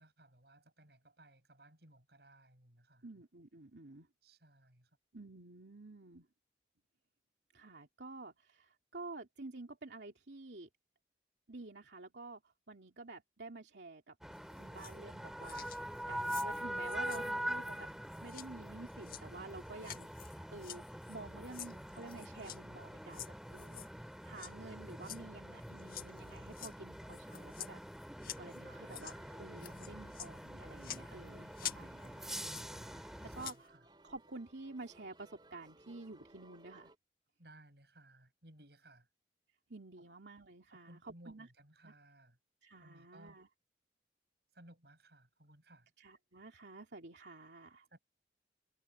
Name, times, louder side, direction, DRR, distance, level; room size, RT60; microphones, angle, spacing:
voice 1, 0.0-3.1 4.2-4.9 17.2-17.8 28.6-29.2 33.2-33.9 37.4-39.1 40.0-40.1 40.7-42.4 42.8-43.4 44.5-45.9 47.9-48.0, right 1 dB, 70° right, 7.8 m, -61 dB
voice 2, 3.0-4.1 5.1-6.3 7.5-10.7 11.5-12.4 12.7-14.1 14.5-17.9 18.2-23.9 24.2-27.8 28.3-33.7 34.0-36.9 39.7-41.5 41.8-41.9 42.6-43.5 46.0-47.9, right 3 dB, 85° right, 2.7 m, -50 dB
sound 1, 14.2-33.5, equal, 5° right, 2.0 m, -44 dB
sound 2, 14.3-15.1 15.4-22.6 23.1-24.5 24.9-29.2 29.6-32.9 33.2-33.6, left 11 dB, 55° left, 1.5 m, -50 dB
sound 3, 28.4-37.0, right 1 dB, 25° right, 3.3 m, -62 dB
head